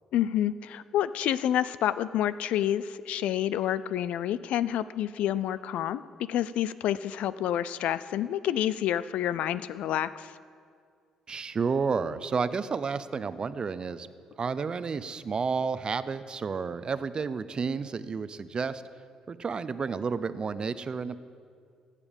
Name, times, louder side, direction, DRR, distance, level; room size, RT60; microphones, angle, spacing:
voice 1, 0.1-6.0 6.3-10.3, left 11 dB, 75° left, 16 dB, 0.4 m, -28 dB
voice 2, 11.3-14.1 14.4-18.8 19.3-21.1, right 5 dB, 40° right, 14 dB, 0.6 m, -31 dB
16.0 x 8.3 x 5.3 m, 2.3 s
supercardioid pair, 60°, 2 cm